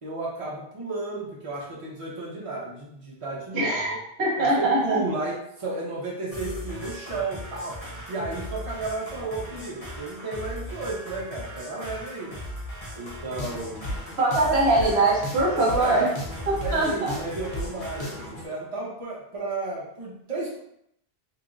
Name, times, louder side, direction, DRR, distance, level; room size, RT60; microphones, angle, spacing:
voice 1, 0.0-4.0 4.4-12.3 12.9-13.8 15.5-16.0 16.6-20.6, right 3 dB, 35° right, -5 dB, 0.8 m, -33 dB
voice 2, 3.5-5.0 14.2-16.1 16.7-17.1, right 2 dB, 85° right, -4 dB, 1.2 m, -22 dB
sound 1, 6.3-18.3, equal, 35° left, 0.9 m, -39 dB
sound 2, 13.2-18.4, left 1 dB, 85° left, 1.0 m, -36 dB
3.1 x 3.0 x 2.5 m, 0.74 s
omnidirectional pair, 1.1 m